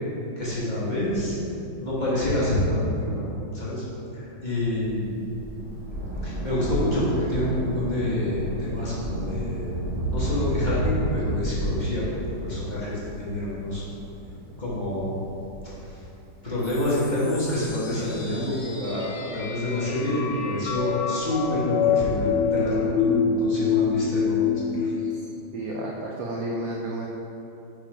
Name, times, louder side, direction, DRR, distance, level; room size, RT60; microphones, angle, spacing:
voice 1, 0.4-1.4 1.8-3.2 3.5-3.8 4.1-5.2 6.2-9.7 10.1-12.0 12.4-13.8 14.6-15.1 16.4-24.5 24.7-24.9, left 1 dB, 25° left, -9 dB, 1.4 m, -27 dB
Thunder, 4.8-17.7 18.6-18.7, right 1 dB, 35° right, 1.3 m, -31 dB
sound 1, 16.6-24.8, left 6 dB, 85° left, 1.5 m, -27 dB
voice 2, 25.5-27.1, right 1 dB, 70° right, -2 dB, 0.8 m, -31 dB
5.4 x 5.1 x 4.9 m, 2.9 s
omnidirectional pair, 2.1 m